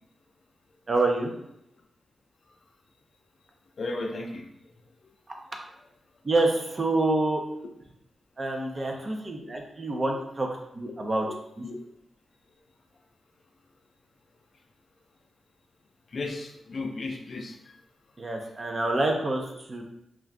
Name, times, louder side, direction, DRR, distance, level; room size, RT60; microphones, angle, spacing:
voice 1, 0.9-1.3 6.2-7.4 8.4-10.5 10.7-11.3 11.6-11.7 18.2-19.8, right 2 dB, 40° right, 2 dB, 0.6 m, -27 dB
voice 2, 3.8-4.4 11.6-11.8 16.1-17.6, left 2 dB, 55° left, 2 dB, 0.4 m, -34 dB
2.5 x 2.4 x 3.4 m, 0.78 s
cardioid pair, 70°, 0 cm